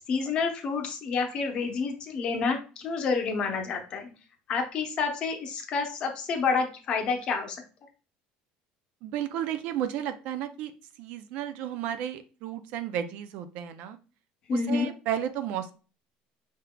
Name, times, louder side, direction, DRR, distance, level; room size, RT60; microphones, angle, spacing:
voice 1, 0.1-4.1 4.5-7.6 14.5-14.9, left 5 dB, 35° left, 5 dB, 0.8 m, -29 dB
voice 2, 9.0-10.7 11.0-14.0 14.5-15.7, right 10 dB, 55° right, 10 dB, 0.4 m, -33 dB
5.6 x 3.6 x 2.2 m, 0.34 s
cardioid pair, 175°, 3 cm